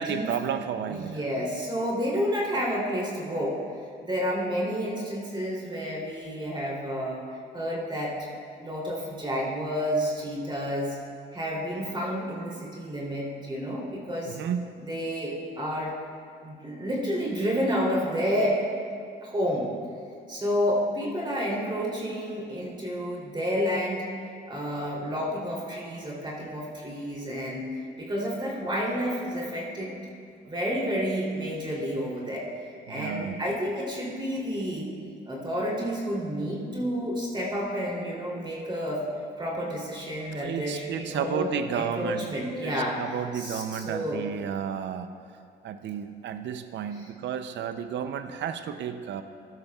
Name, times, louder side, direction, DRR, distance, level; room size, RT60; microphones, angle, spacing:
voice 1, 0.0-1.2 14.3-14.7 32.9-33.4 40.4-42.3 42.6-45.1 45.6-49.2, right 8 dB, 65° right, 9 dB, 0.6 m, -32 dB
voice 2, 0.9-3.5 4.0-7.2 7.5-8.2 8.6-11.0 11.3-14.4 14.8-15.9 16.4-18.7 19.2-19.7 20.3-24.1 24.5-27.7 28.0-29.9 30.4-34.9 35.3-39.0 39.4-43.0 43.3-44.2 46.9-47.1, equal, 25° right, -5 dB, 3.1 m, -30 dB
15.0 x 12.0 x 2.4 m, 2.4 s
cardioid pair, 90°, 20 cm